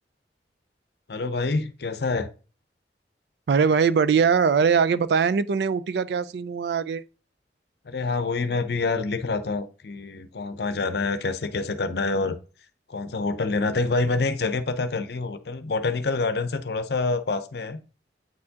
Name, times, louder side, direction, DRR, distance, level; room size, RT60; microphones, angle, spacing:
voice 1, 1.1-2.3 7.9-12.4 12.9-17.8, left 3 dB, 65° left, 0.6 m, -27 dB
voice 2, 3.5-7.0, right 6 dB, 65° right, 0.3 m, -21 dB
8.4 x 4.3 x 2.8 m
head